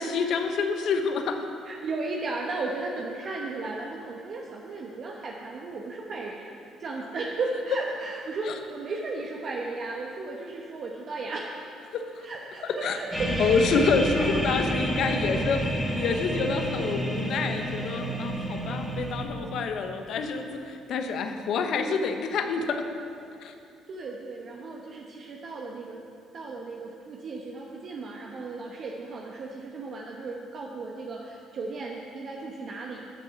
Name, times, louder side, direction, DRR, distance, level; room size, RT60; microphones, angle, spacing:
voice 1, 0.0-1.4 8.5-8.6 11.9-12.2 12.8-13.0 13.4-22.8 23.4-23.5, left 5 dB, 65° left, 6 dB, 1.0 m, -27 dB
voice 2, 1.6-11.6 12.2-13.8 14.1-14.6 23.9-26.0 26.3-33.1, right 3 dB, 55° right, -1 dB, 1.0 m, -35 dB
sound 1, 13.1-19.2, right 1 dB, 5° right, 2.4 m, -29 dB
12.5 x 6.4 x 6.6 m, 2.5 s
hypercardioid pair, 60°, 0 cm